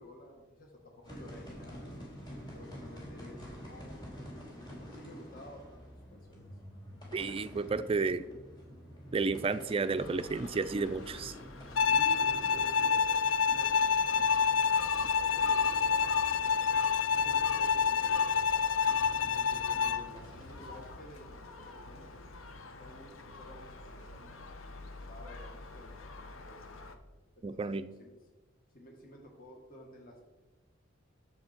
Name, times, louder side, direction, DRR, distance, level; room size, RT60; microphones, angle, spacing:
voice 1, 0.0-2.1 2.5-5.8 6.1-6.5 11.8-16.6 17.2-18.8 19.4-22.2 22.8-26.7 27.4-28.2 28.7-30.2, equal, 45° left, 0 dB, 1.8 m, -52 dB
sound 1, 1.0-20.9, equal, 20° left, 2.7 m, -49 dB
voice 2, 7.1-8.2 9.1-11.4 27.4-27.9, right 4 dB, 30° right, 12 dB, 0.3 m, -32 dB
Gull seagull, 10.0-27.0, left 3 dB, 85° left, 0.9 m, -48 dB
Bowed string instrument, 11.8-20.1, left 6 dB, 65° left, 0.4 m, -28 dB
9.7 x 7.1 x 4.5 m, 1.2 s
head